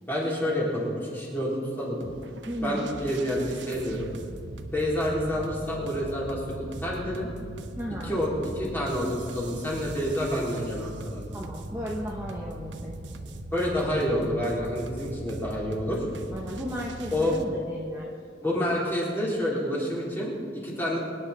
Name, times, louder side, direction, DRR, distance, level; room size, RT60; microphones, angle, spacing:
voice 1, 0.1-2.0 2.6-4.1 4.7-7.3 8.0-11.3 13.5-16.0 17.1-17.4 18.4-21.0, equal, 10° left, -5 dB, 3.8 m, -28 dB
sound 1, 2.0-17.5, right 1 dB, 85° right, 0.9 m, -40 dB
voice 2, 2.5-2.9 7.8-8.2 11.3-13.4 16.3-18.1, equal, 15° right, -4 dB, 1.2 m, -35 dB
24.5 x 10.0 x 4.3 m, 2.3 s
head